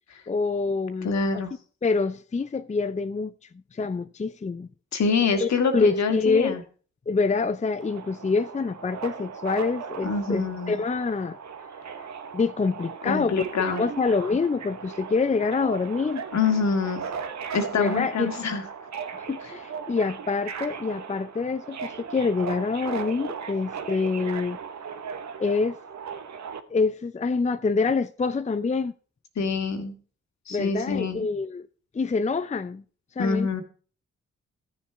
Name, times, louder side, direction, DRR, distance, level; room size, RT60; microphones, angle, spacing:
voice 1, 0.3-1.1 1.8-3.3 3.7-4.7 5.4-6.6 7.1-11.4 12.3-16.3 17.7-18.3 19.1-24.6 25.4-25.8 26.7-28.9 30.5-31.7 31.9-32.8 33.2-33.6, left 4 dB, 25° left, 0.6 m, -26 dB
voice 2, 1.0-1.5 4.9-6.6 10.0-10.8 13.0-13.9 16.3-17.1 17.5-18.6 29.4-29.9 30.5-31.3 33.2-33.6, left 4 dB, 65° left, 2.0 m, -25 dB
Subway metro underground, 7.8-26.6, right 6 dB, 65° right, 1.1 m, -37 dB
13.5 x 7.1 x 4.7 m
supercardioid pair, 40°, 29 cm